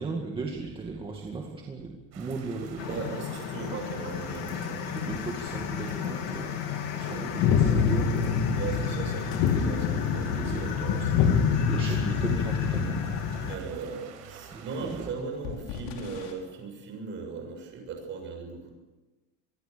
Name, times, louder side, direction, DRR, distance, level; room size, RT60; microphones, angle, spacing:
voice 1, 0.0-3.1 4.8-6.6 6.9-8.5 8.8-8.9 10.3-13.2 14.5-15.1, right 3 dB, 15° right, 0 dB, 2.1 m, -37 dB
sound 1, 2.1-15.1, right 7 dB, 50° right, 6.0 m, -48 dB
sound 2, 2.8-13.6, left 7 dB, 55° left, 2.8 m, -27 dB
voice 2, 2.9-5.0 7.1-7.3 8.5-11.4 11.8-12.0 13.4-18.7, right 4 dB, 35° right, 3 dB, 6.9 m, -38 dB
sound 3, 8.0-10.6 12.9-13.0 13.2-13.5 14.4-16.3, left 6 dB, 70° left, 5.6 m, -45 dB
26.5 x 21.5 x 6.9 m, 1.2 s
cardioid pair, 180°, 34 cm